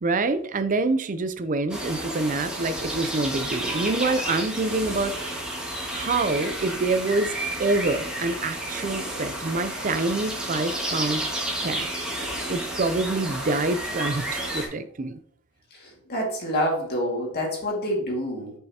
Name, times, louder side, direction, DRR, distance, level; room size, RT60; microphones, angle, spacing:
voice 1, 0.0-5.4 5.9-11.2 11.6-11.9 12.2-15.2, right 3 dB, 35° right, 11 dB, 0.5 m, -26 dB
sound 1, 1.7-14.7, right 1 dB, 5° right, 1.7 m, -31 dB
voice 2, 15.7-18.5, equal, 50° left, -1 dB, 2.1 m, -27 dB
7.2 x 5.5 x 2.9 m, 0.63 s
head